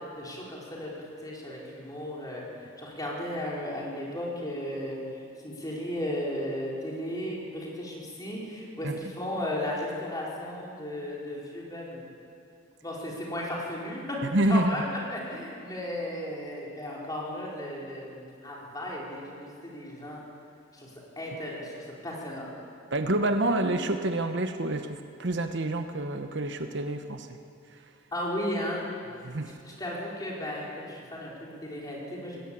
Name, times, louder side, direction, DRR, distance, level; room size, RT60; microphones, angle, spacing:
voice 1, 0.2-2.4 2.8-5.0 5.4-12.0 12.8-20.2 20.7-20.9 21.2-22.5 28.1-28.8 29.6-32.4, left 1 dB, 20° left, -4 dB, 4.7 m, -35 dB
voice 2, 14.2-14.8 22.9-27.3 29.2-29.5, right 1 dB, 65° right, 7 dB, 1.1 m, -27 dB
19.5 x 16.5 x 8.5 m, 2.6 s
head